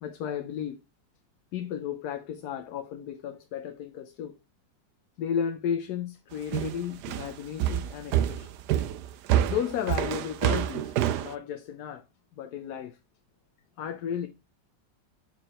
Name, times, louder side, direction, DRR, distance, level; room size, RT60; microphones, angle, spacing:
voice 1, 0.0-0.8 1.5-4.3 5.2-8.5 9.5-12.0 12.4-13.0 13.8-14.3, left 8 dB, 70° left, 1.1 m, -33 dB
sound 1, 6.5-11.3, right 11 dB, 75° right, 1.1 m, -27 dB
7.6 x 4.7 x 4.2 m
omnidirectional pair, 1.9 m